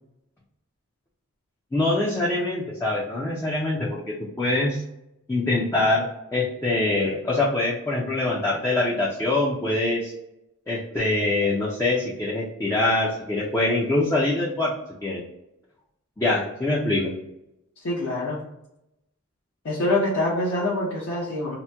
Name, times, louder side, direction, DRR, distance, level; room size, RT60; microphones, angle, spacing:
voice 1, 1.7-4.8 5.3-10.1 10.7-14.7 15.0-15.2 16.2-17.1, left 2 dB, 15° left, -4 dB, 0.4 m, -24 dB
voice 2, 17.8-18.4 19.6-21.6, left 1 dB, 60° left, -6 dB, 0.7 m, -25 dB
2.9 x 2.1 x 3.3 m, 0.86 s
head